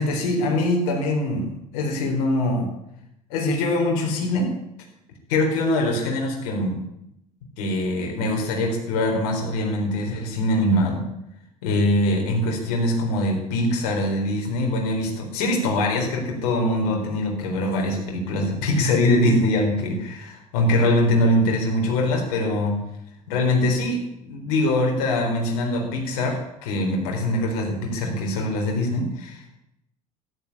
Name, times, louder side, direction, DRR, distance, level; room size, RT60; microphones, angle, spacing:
voice 1, 0.0-2.7 3.3-4.5 5.3-6.8 7.6-11.0 11.6-22.8 23.3-29.6, left 1 dB, 65° left, 1 dB, 4.1 m, -23 dB
14.0 x 11.5 x 8.7 m, 0.81 s
hypercardioid pair, 65°, 19 cm